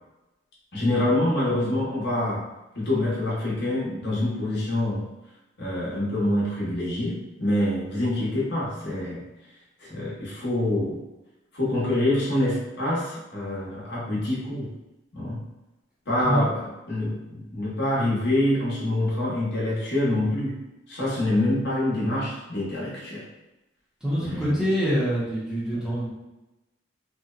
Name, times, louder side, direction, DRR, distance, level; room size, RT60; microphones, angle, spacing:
voice 1, 0.7-2.5 2.7-5.1 5.6-9.2 9.8-11.0 11.5-14.7 15.1-15.4 16.1-20.6 20.9-23.3 24.2-24.6, left 1 dB, 60° left, -6 dB, 0.8 m, -26 dB
voice 2, 24.0-26.1, equal, 5° right, -9 dB, 0.6 m, -25 dB
2.7 x 2.1 x 2.3 m, 0.99 s
head